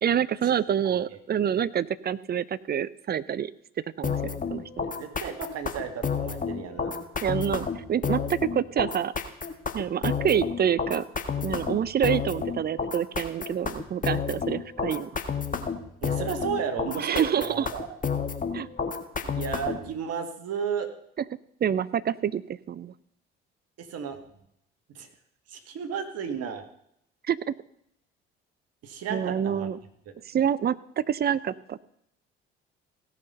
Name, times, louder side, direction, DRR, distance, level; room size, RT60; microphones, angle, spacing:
voice 1, 0.0-3.5 4.0-4.9 7.2-9.1 9.7-11.0 11.4-15.1 17.0-17.7 18.5-18.7 21.6-22.9 27.3-27.4 29.1-29.8 30.3-31.8, right 9 dB, 35° right, 18 dB, 0.6 m, -27 dB
voice 2, 0.8-1.2 4.8-7.0 16.0-18.0 19.2-20.9 23.8-24.2 24.9-25.1 25.5-26.6 28.8-29.7 30.1-30.2, right 7 dB, 60° right, 7 dB, 1.8 m, -33 dB
sound 1, 4.0-19.9, left 6 dB, 30° left, 1.6 m, -30 dB
17.0 x 5.9 x 5.3 m, 0.74 s
hypercardioid pair, 50°, 29 cm